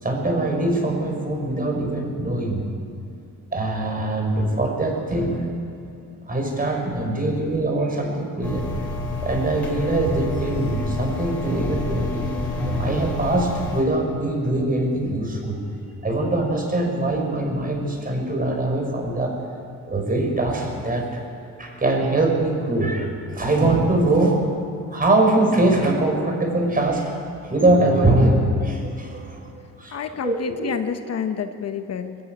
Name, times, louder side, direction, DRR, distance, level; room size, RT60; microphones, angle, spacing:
voice 1, 0.0-2.6 3.5-5.5 6.3-8.7 9.2-15.6 16.0-19.4 19.9-21.2 21.6-24.4 24.9-27.2 27.4-29.5 29.8-30.8, right 2 dB, 30° right, 2 dB, 5.3 m, -22 dB
sound 1, 8.4-13.8, left 1 dB, 5° left, 5.8 m, -28 dB
voice 2, 29.9-32.2, left 7 dB, 55° left, 8 dB, 1.1 m, -29 dB
21.5 x 13.0 x 9.1 m, 2.5 s
cardioid pair, 90°, 30 cm